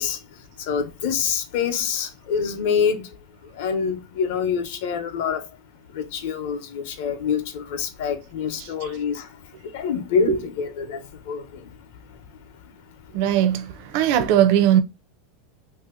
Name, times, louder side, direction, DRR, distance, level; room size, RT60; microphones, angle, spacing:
voice 1, 0.0-5.5 5.9-11.8 12.1-12.2 12.4-12.5, left 6 dB, 60° left, 0.8 m, -26 dB
voice 2, 13.1-14.8, right 11 dB, 50° right, 0.4 m, -19 dB
2.8 x 2.7 x 3.6 m
supercardioid pair, 175°, 0 cm